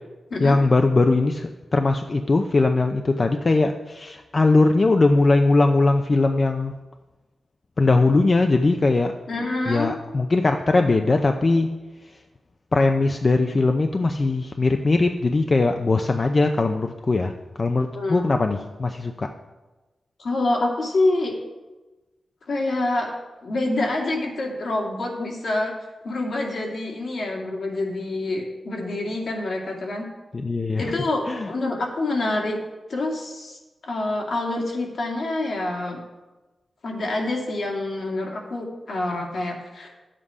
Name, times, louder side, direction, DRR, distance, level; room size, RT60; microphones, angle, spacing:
voice 1, 0.4-6.8 7.8-9.1 9.7-11.8 12.0-12.2 12.7-19.3 30.3-30.9 31.3-31.5, left 3 dB, 40° left, 5 dB, 0.6 m, -20 dB
voice 2, 9.3-9.9 17.9-18.2 20.2-21.3 22.5-23.1 23.4-25.7 26.0-30.1 30.8-32.6 32.9-36.0 36.8-39.9, left 2 dB, 70° left, -1 dB, 2.4 m, -26 dB
11.0 x 7.6 x 4.9 m, 1.2 s
wide cardioid pair, 105°, 0 cm